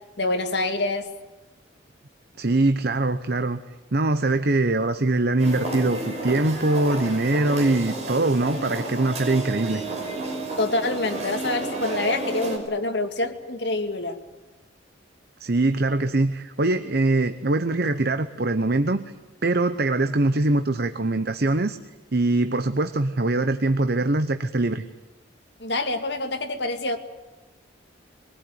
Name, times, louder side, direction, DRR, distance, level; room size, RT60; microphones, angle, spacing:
voice 1, 0.2-1.1 10.5-14.2 25.6-27.0, left 2 dB, 60° left, 6 dB, 2.3 m, -26 dB
voice 2, 2.4-3.6 3.9-9.9 15.4-19.1 19.4-21.8 22.1-24.9, right 2 dB, 50° right, 10 dB, 0.9 m, -22 dB
sound 1, 5.4-12.6, right 2 dB, 35° right, 5.9 m, -31 dB
24.0 x 19.0 x 9.6 m, 1.1 s
head